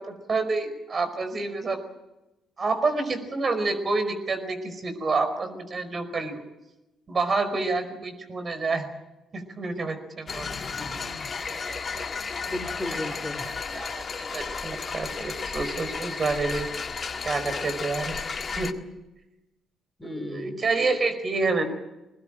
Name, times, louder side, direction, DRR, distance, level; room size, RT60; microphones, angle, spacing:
voice 1, 0.0-1.8 2.6-6.4 7.1-8.9 9.3-10.5 11.5-12.1 13.7-16.7 17.2-18.3 18.6-18.7 20.0-21.6, right 3 dB, 45° right, 8 dB, 4.9 m, -28 dB
sound 1, 10.3-18.7, left 5 dB, 45° left, 1.8 m, -33 dB
voice 2, 10.7-11.3 12.5-13.5 20.0-20.6, left 1 dB, 15° left, 7 dB, 3.9 m, -36 dB
22.0 x 20.0 x 8.9 m, 0.98 s
hypercardioid pair, 50°, 0 cm